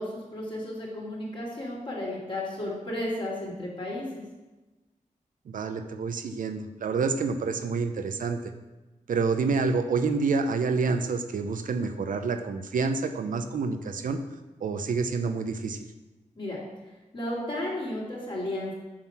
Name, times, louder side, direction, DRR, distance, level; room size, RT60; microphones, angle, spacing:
voice 1, 0.0-4.2 16.4-16.6 17.1-18.7, left 1 dB, 40° left, -4 dB, 2.9 m, -33 dB
voice 2, 5.5-8.4 9.1-14.2 14.6-15.8, right 4 dB, 85° right, 7 dB, 0.7 m, -28 dB
7.5 x 6.4 x 5.9 m, 1.1 s
wide cardioid pair, 130°, 14 cm